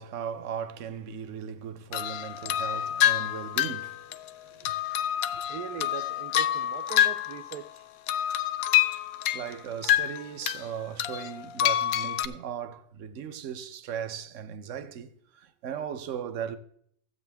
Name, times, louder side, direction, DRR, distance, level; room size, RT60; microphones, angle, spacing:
voice 1, 0.0-4.2 4.5-4.7 5.3-5.4 9.3-16.6, right 8 dB, 60° right, 1.0 m, -37 dB
sound 1, 1.9-7.8 8.1-10.6 11.0-12.3, left 11 dB, 70° left, 1.0 m, -27 dB
voice 2, 5.5-7.9, right 10 dB, 90° right, 1.2 m, -40 dB
13.5 x 8.1 x 3.4 m
omnidirectional pair, 1.6 m